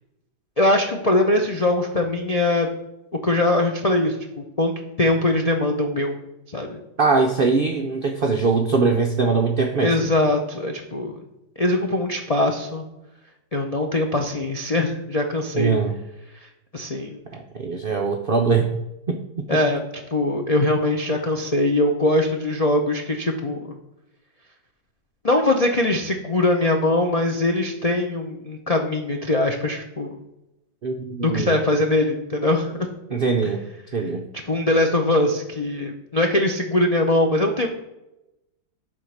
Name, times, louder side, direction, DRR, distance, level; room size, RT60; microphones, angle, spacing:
voice 1, 0.6-2.7 3.2-4.2 4.6-6.2 6.5-6.8 9.8-11.2 11.6-12.9 13.5-15.8 16.7-17.2 19.5-19.8 20.1-23.6 25.2-30.1 31.2-32.9 34.4-37.7, left 2 dB, 65° left, 1 dB, 0.3 m, -21 dB
voice 2, 7.0-10.0 15.5-15.9 17.3-18.7 19.1-19.2 30.8-31.5 33.1-33.6 33.9-34.2, right 4 dB, 80° right, 3 dB, 0.5 m, -21 dB
11.0 x 3.9 x 6.4 m, 0.95 s
omnidirectional pair, 1.9 m